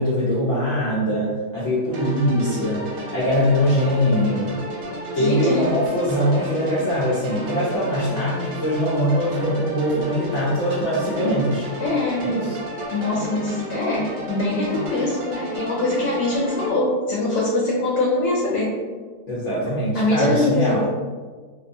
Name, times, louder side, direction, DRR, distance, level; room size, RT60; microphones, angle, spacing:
voice 1, 0.0-4.6 5.1-11.6 12.2-12.5 19.3-20.8, equal, 65° left, -8 dB, 0.7 m, -22 dB
sound 1, 1.9-16.7, right 1 dB, 65° right, 0.9 m, -32 dB
voice 2, 5.1-5.7 11.8-12.4 12.9-18.8 19.9-20.8, left 2 dB, 80° left, -4 dB, 1.2 m, -23 dB
2.6 x 2.3 x 2.5 m, 1.5 s
omnidirectional pair, 1.8 m